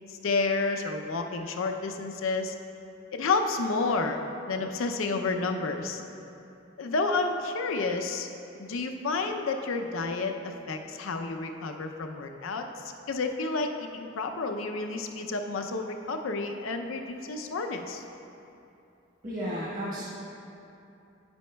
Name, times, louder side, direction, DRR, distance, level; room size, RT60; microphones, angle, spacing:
voice 1, 0.1-2.5 3.1-4.2 4.5-6.0 6.8-8.3 8.6-18.0, left 3 dB, 85° left, 5 dB, 0.5 m, -30 dB
voice 2, 19.2-20.0, equal, 45° right, -9 dB, 1.4 m, -33 dB
9.2 x 8.1 x 2.2 m, 2.8 s
head